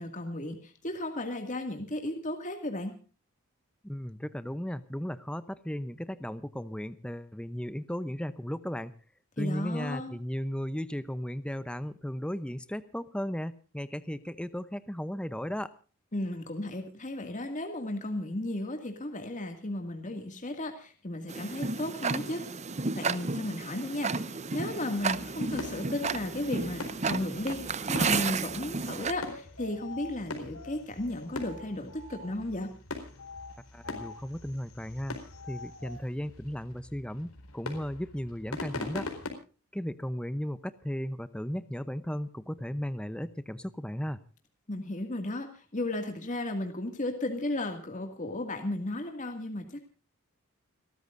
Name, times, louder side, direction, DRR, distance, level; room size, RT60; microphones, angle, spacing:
voice 1, 0.0-2.9 9.4-10.2 16.1-22.4 22.9-32.7 44.7-49.8, left 1 dB, 35° left, 4 dB, 2.2 m, -34 dB
voice 2, 3.8-8.9 9.4-15.7 33.7-35.2 35.5-39.1 39.7-44.2, equal, 5° left, 13 dB, 0.7 m, -35 dB
Tick-tock, 21.3-29.1, right 4 dB, 30° right, 0.7 m, -32 dB
sound 1, 24.9-39.3, left 2 dB, 85° left, 4.4 m, -43 dB
sound 2, 29.2-32.6 33.1-36.0, left 3 dB, 60° left, 4.8 m, -48 dB
30.0 x 13.5 x 2.6 m, 0.37 s
head